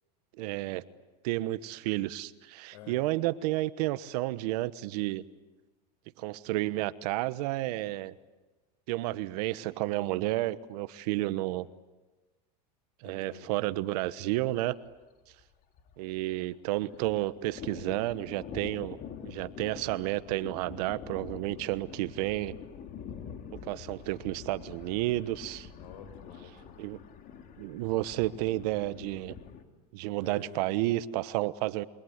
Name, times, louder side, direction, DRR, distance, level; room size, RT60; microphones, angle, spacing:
voice 1, 0.4-0.8 1.2-5.2 6.2-8.1 8.9-11.7 13.0-14.8 16.0-19.0 19.2-22.5 23.6-25.7 26.8-27.0 27.6-29.3 29.9-31.8, right 17 dB, 70° right, 14 dB, 1.2 m, -31 dB
voice 2, 2.7-3.0 13.0-13.6 25.8-26.8 30.2-30.6, left 7 dB, 70° left, 8 dB, 6.8 m, -49 dB
Thunder, 14.0-14.2 14.5-14.6 14.9-16.4 16.6-29.6, left 7 dB, 40° left, 3.3 m, -46 dB
28.0 x 24.0 x 8.2 m, 1.2 s
supercardioid pair, 120°, 21 cm